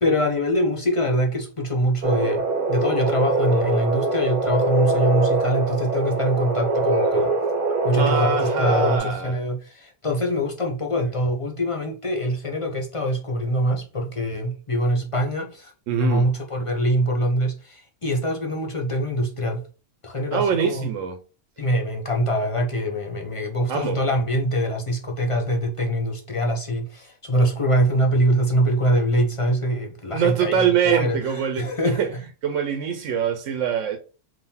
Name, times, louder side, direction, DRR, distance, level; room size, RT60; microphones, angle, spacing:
voice 1, 0.0-7.3 7.8-15.7 16.0-19.6 20.0-20.9 21.6-31.2 31.6-32.0, equal, 35° left, 0.6 m, -24 dB
sound 1, 2.0-9.0, right 2 dB, 50° right, 0.6 m, -23 dB
voice 2, 8.0-9.4 11.0-11.1 15.9-16.3 20.3-21.2 23.7-24.0 30.1-32.1 32.4-34.0, right 7 dB, 75° right, 0.9 m, -24 dB
3.7 x 2.6 x 4.1 m
omnidirectional pair, 1.3 m